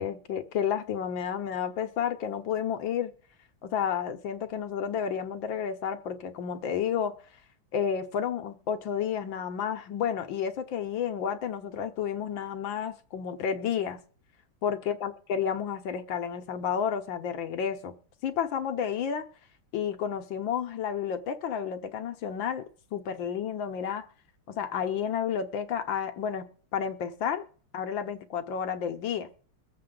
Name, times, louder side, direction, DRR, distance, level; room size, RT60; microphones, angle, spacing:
voice 1, 0.0-3.1 3.6-7.1 7.7-14.0 14.6-17.9 18.2-19.3 19.7-22.6 22.9-24.1 24.5-26.5 26.7-27.4 27.7-29.3, left 8 dB, 70° left, 8 dB, 1.5 m, -31 dB
22.5 x 7.6 x 3.8 m, 0.43 s
omnidirectional pair, 2.3 m